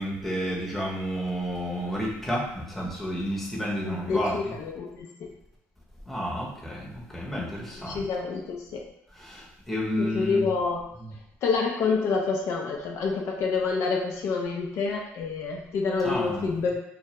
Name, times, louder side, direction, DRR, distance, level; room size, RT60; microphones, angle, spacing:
voice 1, 0.0-4.5 6.1-8.1 9.2-10.4 16.0-16.5, equal, 5° left, -4 dB, 0.7 m, -31 dB
voice 2, 3.8-5.1 7.3-7.5 7.9-8.8 10.0-10.8 11.4-16.7, left 4 dB, 65° left, 0 dB, 0.4 m, -27 dB
2.2 x 2.0 x 2.8 m, 0.77 s
cardioid pair, 95°, 5 cm